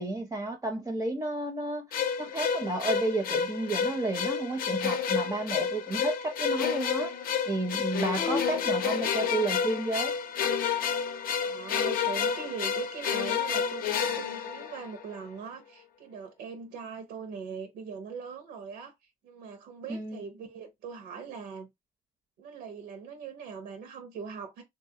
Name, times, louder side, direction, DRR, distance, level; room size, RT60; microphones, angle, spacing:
voice 1, 0.0-10.1 19.9-20.2, right 2 dB, 20° right, 0.5 m, -32 dB
sound 1, 1.9-15.2, left 7 dB, 60° left, 0.6 m, -30 dB
voice 2, 11.4-21.7 22.4-24.6, right 5 dB, 90° right, 0.7 m, -41 dB
3.4 x 2.4 x 2.7 m
cardioid pair, 110°, 17 cm